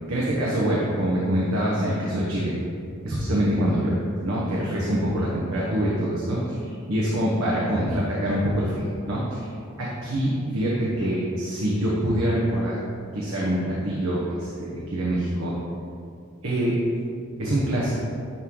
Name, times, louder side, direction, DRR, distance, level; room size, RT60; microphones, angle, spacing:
voice 1, 0.1-2.5 3.0-9.5 9.8-12.8 13.1-15.5 16.4-16.8 17.4-18.0, right 1 dB, 90° right, -6 dB, 0.9 m, -25 dB
9.8 x 3.7 x 3.0 m, 2.4 s
head